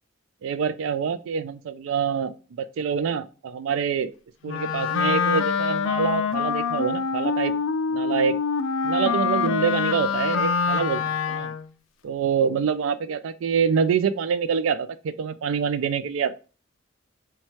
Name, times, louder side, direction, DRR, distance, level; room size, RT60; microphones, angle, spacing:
voice 1, 0.4-4.1 4.4-7.5 7.9-8.4 8.8-11.5 12.0-16.4, right 6 dB, 80° right, 13 dB, 0.3 m, -26 dB
Wind instrument woodwind instrument, 4.5-11.7, left 6 dB, 70° left, 0.3 m, -25 dB
3.0 x 2.2 x 4.1 m, 0.35 s
head